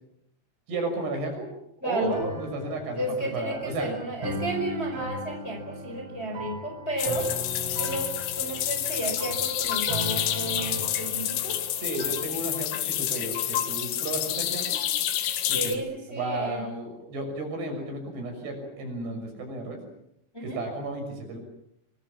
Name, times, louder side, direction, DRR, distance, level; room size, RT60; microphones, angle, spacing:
voice 1, 0.7-1.5 1.8-2.1 2.3-3.9 11.8-14.8 15.5-15.7 16.1-19.8 20.4-21.4, right 2 dB, 55° right, 4 dB, 8.3 m, -33 dB
voice 2, 1.8-2.3 2.9-7.3 7.8-11.6 15.5-16.6 20.3-20.6, right 1 dB, 15° left, 3 dB, 4.7 m, -32 dB
sound 1, 2.0-12.1, right 1 dB, 85° right, 7.4 m, -37 dB
sound 2, 7.0-15.8, left 11 dB, 90° left, 4.4 m, -29 dB
25.5 x 24.5 x 7.3 m, 0.76 s
omnidirectional pair, 5.7 m